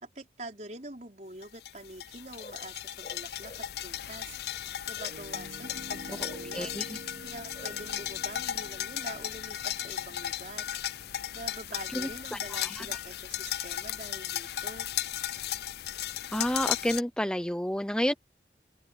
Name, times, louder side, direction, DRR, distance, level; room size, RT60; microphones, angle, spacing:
voice 1, 0.0-6.7 7.2-10.7 11.3-14.9, right 2 dB, 40° right, 5.2 m, -45 dB
sound 1, 1.4-17.0, left 11 dB, 60° left, 0.4 m, -36 dB
sound 2, 2.1-16.2, left 1 dB, 30° left, 6.7 m, -58 dB
Piano, 5.1-13.0, right 1 dB, 60° right, 2.4 m, -49 dB
voice 2, 6.5-6.8 11.9-12.9 16.3-18.1, equal, 5° left, 0.5 m, -30 dB
open air
head